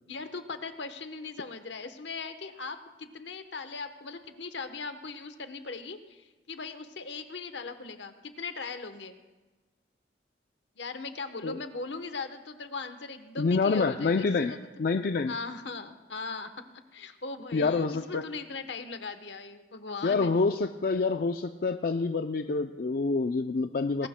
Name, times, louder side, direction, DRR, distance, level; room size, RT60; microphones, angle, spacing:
voice 1, 0.1-9.1 10.8-14.7 15.3-16.5 16.9-20.4 24.0-24.1, left 4 dB, 80° left, 9 dB, 1.0 m, -39 dB
voice 2, 13.4-14.5 14.8-15.3 17.5-18.2 20.0-24.1, left 4 dB, 55° left, 7 dB, 0.4 m, -27 dB
20.5 x 18.5 x 2.2 m, 1.2 s
head